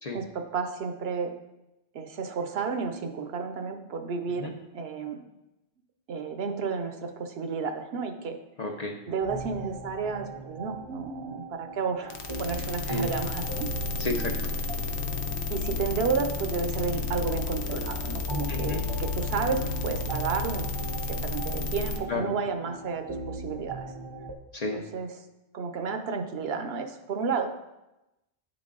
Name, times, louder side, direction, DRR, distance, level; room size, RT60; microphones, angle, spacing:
voice 1, 0.1-1.3 1.9-5.2 6.1-8.4 9.1-13.7 15.5-20.6 21.3-23.9 24.7-25.1 25.5-27.5, right 5 dB, 70° right, 6 dB, 0.8 m, -32 dB
voice 2, 8.6-9.0 12.9-13.1 14.0-14.3 18.5-18.8 22.1-22.3 24.5-24.8, left 2 dB, 45° left, 2 dB, 0.6 m, -31 dB
sound 1, 9.2-24.3, right 2 dB, 35° right, 0.4 m, -39 dB
sound 2, 12.1-22.0, left 4 dB, 90° left, 0.9 m, -32 dB
9.0 x 3.9 x 3.7 m, 0.95 s
omnidirectional pair, 1.1 m